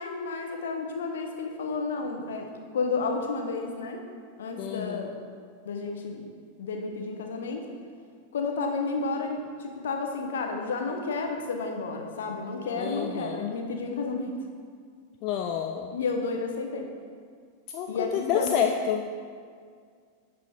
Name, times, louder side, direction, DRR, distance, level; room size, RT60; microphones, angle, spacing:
voice 1, 0.0-2.5 2.7-4.0 4.4-5.1 5.6-6.2 6.6-7.6 8.3-14.3 15.9-16.9 17.9-18.6, left 4 dB, 60° left, 3 dB, 0.8 m, -31 dB
voice 2, 4.6-5.1 12.8-13.5 15.2-15.9 17.7-19.1, left 8 dB, 40° left, 4 dB, 0.3 m, -29 dB
11.0 x 4.1 x 3.5 m, 2.1 s
figure-of-eight pair, 90°, 0 cm